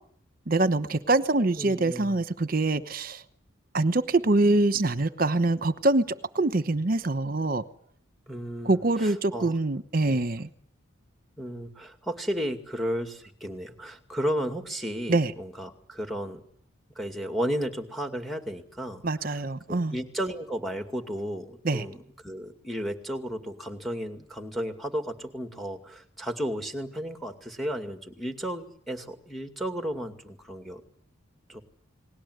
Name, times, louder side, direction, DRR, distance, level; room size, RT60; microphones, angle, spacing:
voice 1, 0.5-3.2 3.7-7.6 8.6-10.5 15.1-15.3 19.0-20.0 21.6-21.9, right 2 dB, 45° right, 12 dB, 1.0 m, -24 dB
voice 2, 1.6-2.2 8.3-9.6 10.1-10.2 11.4-16.4 17.0-30.8 31.5-31.6, equal, ahead, 6 dB, 2.3 m, -34 dB
29.5 x 20.5 x 8.1 m, 0.64 s
head